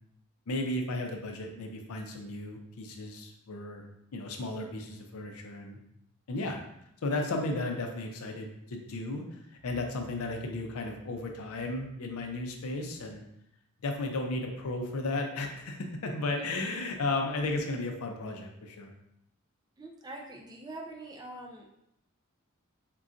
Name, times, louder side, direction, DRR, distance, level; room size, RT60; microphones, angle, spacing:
voice 1, 0.5-3.9 4.1-5.8 6.3-6.6 7.0-13.2 13.8-18.9, left 2 dB, 75° left, 3 dB, 0.5 m, -34 dB
voice 2, 19.8-21.7, right 2 dB, 20° right, 0 dB, 0.4 m, -44 dB
3.8 x 2.2 x 2.5 m, 0.79 s
head